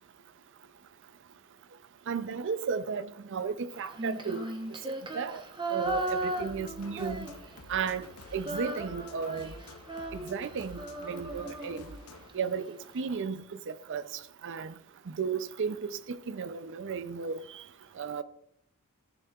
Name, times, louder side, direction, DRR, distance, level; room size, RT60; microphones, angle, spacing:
voice 1, 2.1-3.6 4.0-4.4 5.1-5.4 5.7-7.3 7.7-8.1 8.3-9.5 10.3-11.8 12.3-14.0 14.4-14.7 15.2-17.4 18.0-18.2, right 6 dB, 55° right, 0.5 m, -34 dB
Female singing, 3.8-7.8 8.0-12.3, right 1 dB, 20° right, 0.9 m, -37 dB
sound 1, 5.8-12.3, left 2 dB, 85° left, 0.7 m, -49 dB
13.5 x 7.0 x 2.4 m
head